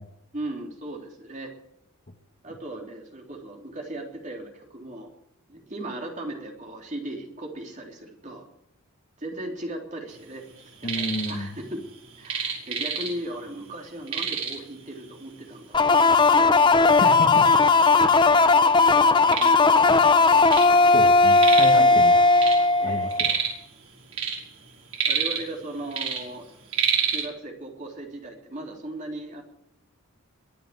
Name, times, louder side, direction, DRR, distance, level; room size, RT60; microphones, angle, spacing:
voice 1, 0.3-1.5 2.4-5.1 5.5-8.4 9.2-11.9 12.2-16.7 18.9-20.1 21.8-22.1 22.8-23.1 25.0-26.5 27.1-29.4, right 1 dB, 35° right, 1 dB, 3.4 m, -37 dB
sound 1, 10.6-11.4 11.6-13.4 13.7-13.8 14.1-14.7 15.5-15.6 16.1-16.2 17.0-17.1 17.3-18.2 18.7-20.7 21.0-21.8 22.1-23.6 24.0-25.6 25.9-27.2, right 6 dB, 75° right, 5.7 m, -28 dB
voice 2, 10.8-11.5 17.0-17.6 20.9-22.2 22.8-23.3, left 1 dB, 40° left, 4 dB, 1.6 m, -30 dB
sound 2, 15.7-23.3, left 3 dB, 20° left, 0.7 m, -17 dB
23.0 x 7.9 x 7.9 m, 0.80 s
head